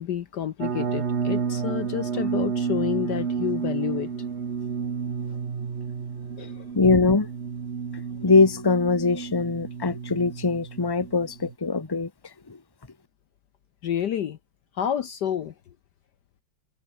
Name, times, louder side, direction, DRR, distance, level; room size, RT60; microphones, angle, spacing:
voice 1, 0.0-4.1 6.4-6.6 13.8-14.4 14.8-15.5, left 9 dB, 60° left, 1.4 m, -29 dB
sound 1, 0.6-11.5, right 6 dB, 35° right, 1.4 m, -31 dB
voice 2, 6.7-7.3 8.2-12.1, left 3 dB, 15° left, 1.3 m, -22 dB
omnidirectional pair, 2.2 m